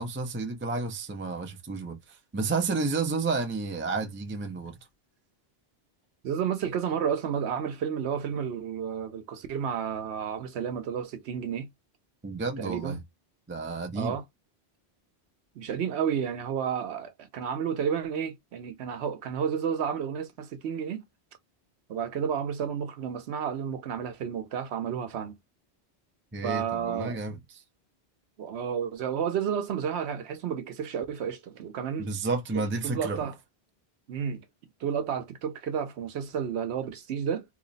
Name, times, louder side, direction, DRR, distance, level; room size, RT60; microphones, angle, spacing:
voice 1, 0.0-4.7 12.2-13.0 13.5-14.2 26.3-27.6 32.0-33.2, right 3 dB, 15° right, 0.4 m, -31 dB
voice 2, 6.2-11.7 12.6-13.0 13.9-14.2 15.6-21.0 21.9-25.4 26.4-27.2 28.4-32.1 32.8-33.3 34.1-34.4 34.8-37.4, right 8 dB, 85° right, 0.9 m, -31 dB
3.0 x 2.0 x 3.9 m
omnidirectional pair, 1.1 m